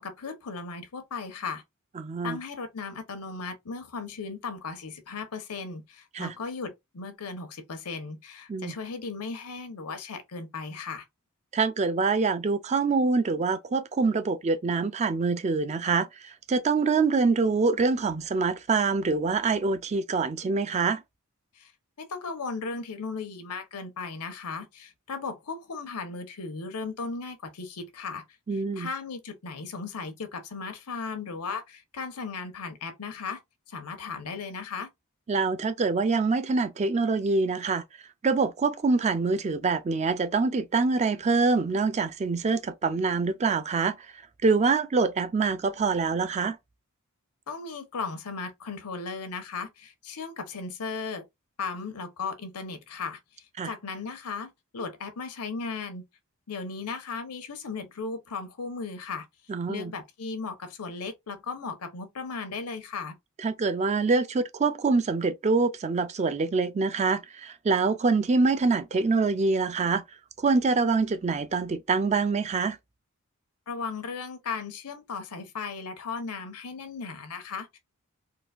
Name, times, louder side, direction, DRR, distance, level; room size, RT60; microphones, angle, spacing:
voice 1, 0.0-1.6 2.2-11.0 21.6-21.7 22.0-28.2 28.8-33.4 33.7-34.9 47.5-51.2 51.6-53.2 53.6-56.0 56.5-59.3 59.7-63.1 73.7-77.8, left 4 dB, 85° left, 0.9 m, -36 dB
voice 2, 2.0-2.4 6.1-6.3 8.5-8.7 11.5-21.0 28.5-28.9 35.3-37.8 38.2-43.9 44.4-46.6 53.6-53.7 59.5-59.9 63.4-70.0 70.4-72.8, right 4 dB, 30° right, 0.3 m, -25 dB
3.9 x 2.5 x 2.3 m
head